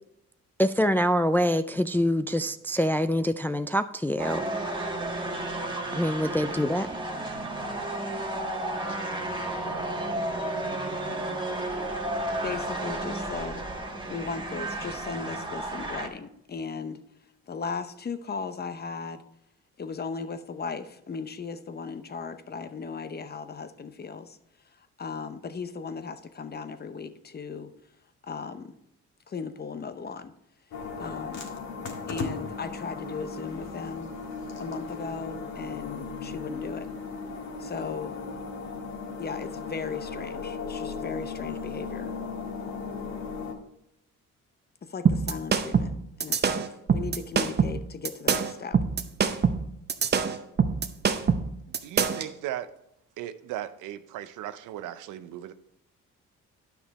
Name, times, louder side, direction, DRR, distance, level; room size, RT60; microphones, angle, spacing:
voice 1, 0.6-4.4 6.0-6.9, equal, 5° left, 0.3 m, -25 dB
sound 1, 4.2-16.1, right 1 dB, 15° right, 1.4 m, -32 dB
voice 2, 12.4-13.6 14.1-17.0 17.5-19.2 19.8-24.4 24.8-27.7 28.2-28.8 29.3-30.3 31.0-31.5 32.1-34.1 34.6-36.9 37.6-38.2 39.2-42.1 44.8-48.8, left 5 dB, 35° left, 0.8 m, -37 dB
sound 2, 30.7-43.5, left 4 dB, 65° left, 1.8 m, -36 dB
sound 3, 45.1-52.3, right 6 dB, 35° right, 0.7 m, -24 dB
voice 3, 51.7-52.7 53.2-55.5, right 12 dB, 90° right, 0.6 m, -37 dB
10.0 x 5.9 x 4.1 m
cardioid pair, 90°, 30 cm